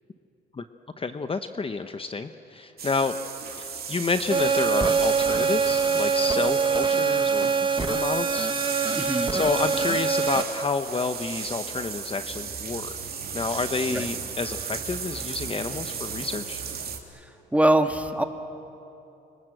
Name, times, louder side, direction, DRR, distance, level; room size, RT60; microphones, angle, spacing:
voice 1, 1.0-3.1 3.5-8.8 9.3-12.9 13.3-16.6, left 4 dB, 30° left, 9 dB, 1.0 m, -29 dB
sound 1, 2.8-17.0, right 6 dB, 50° right, 3.0 m, -35 dB
sound 2, 4.3-10.4, right 5 dB, 25° right, 1.3 m, -24 dB
voice 2, 8.9-9.3 13.9-14.1 17.5-18.2, right 1 dB, 5° right, 6 dB, 1.8 m, -22 dB
29.0 x 25.0 x 7.8 m, 2.9 s
cardioid pair, 90°, 20 cm